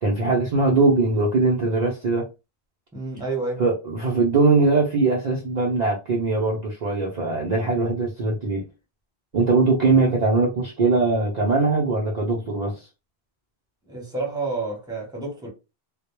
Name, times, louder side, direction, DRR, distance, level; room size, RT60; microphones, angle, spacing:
voice 1, 0.0-2.3 3.6-8.6 9.3-12.9, right 3 dB, 50° right, 0.6 m, -21 dB
voice 2, 2.9-3.6 13.9-15.5, right 3 dB, 5° right, 0.8 m, -29 dB
2.2 x 2.0 x 2.9 m
omnidirectional pair, 1.0 m